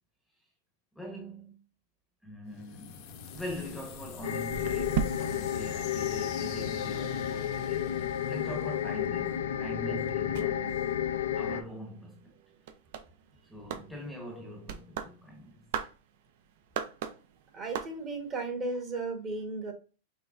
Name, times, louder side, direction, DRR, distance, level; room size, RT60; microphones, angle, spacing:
voice 1, 0.9-1.6 2.2-11.0 11.3-12.4 13.4-15.7, equal, ahead, 1.0 m, -43 dB
sound 1, 2.5-9.4, left 8 dB, 45° left, 0.8 m, -46 dB
sound 2, 3.3-6.8 7.1-18.3, right 8 dB, 60° right, 0.6 m, -41 dB
sound 3, 4.2-11.6, left 10 dB, 85° left, 0.5 m, -32 dB
voice 2, 17.5-19.7, right 3 dB, 25° right, 1.2 m, -35 dB
5.7 x 3.3 x 2.5 m
supercardioid pair, 145°, 0 cm